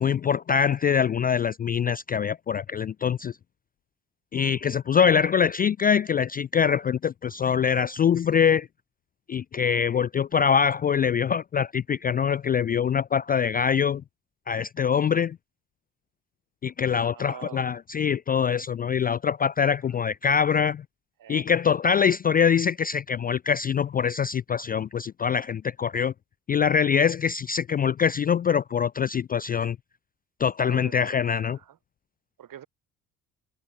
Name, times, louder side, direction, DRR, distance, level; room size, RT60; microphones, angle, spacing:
voice 1, 0.0-3.4 4.3-8.7 9.3-14.0 14.5-15.4 16.6-20.8 21.3-26.1 26.5-29.8 30.4-31.6, left 7 dB, 25° left, 0.4 m, -24 dB
voice 2, 17.1-17.6 21.2-21.5 30.7-31.2 31.5-31.8 32.4-32.7, right 10 dB, 50° right, 4.6 m, -43 dB
hypercardioid pair, 55°, 41 cm